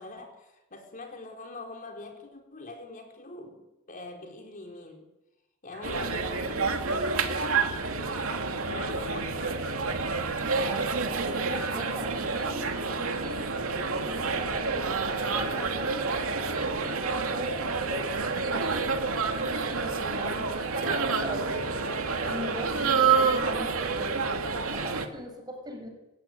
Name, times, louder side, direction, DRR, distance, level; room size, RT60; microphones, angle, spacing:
voice 1, 0.0-3.6 3.9-5.0 5.6-8.0 8.5-10.0, left 2 dB, 40° left, 2 dB, 4.3 m, -43 dB
Drum, 5.7-6.4 8.4-9.5 12.3-13.4 16.1-17.7 20.8-23.8, right 1 dB, 50° right, 6.0 m, -44 dB
sound 1, 5.8-25.1, right 4 dB, 70° right, 2.9 m, -29 dB
voice 2, 10.4-13.4 14.0-18.1 18.5-18.8 19.4-21.8 22.2-24.2 24.7-25.9, right 1 dB, 20° right, 4 dB, 5.6 m, -39 dB
28.0 x 15.5 x 9.7 m, 1.0 s
head